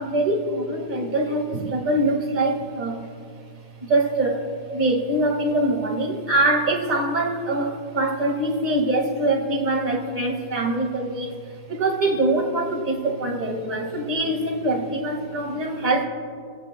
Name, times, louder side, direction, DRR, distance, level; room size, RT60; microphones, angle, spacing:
voice 1, 0.0-3.1 3.8-11.3 11.7-16.0, right 2 dB, 25° right, 0 dB, 1.9 m, -23 dB
25.5 x 17.5 x 2.2 m, 2.4 s
omnidirectional pair, 2.0 m